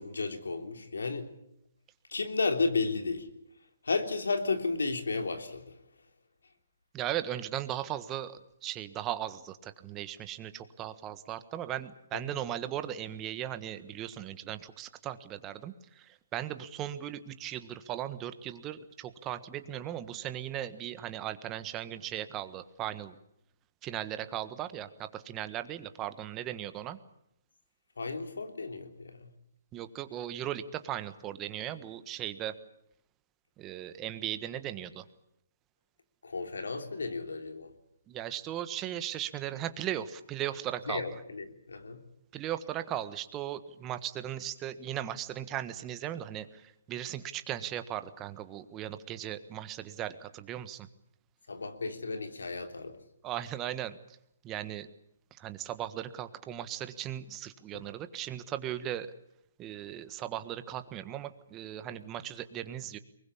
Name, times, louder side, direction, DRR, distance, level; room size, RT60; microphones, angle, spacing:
voice 1, 0.0-1.3 2.1-3.3 3.8-5.7 12.1-12.2 28.0-29.3 36.2-37.7 40.9-42.0 51.5-52.9 57.7-57.8, left 3 dB, 85° left, 6 dB, 3.3 m, -33 dB
voice 2, 6.9-23.2 23.8-27.0 29.7-32.6 33.6-35.0 38.1-41.2 42.3-50.9 53.2-53.9 54.4-54.9 55.4-59.1 59.6-63.0, right 11 dB, 20° right, 11 dB, 1.5 m, -37 dB
23.5 x 20.5 x 8.6 m, 0.77 s
hypercardioid pair, 145°, 0 cm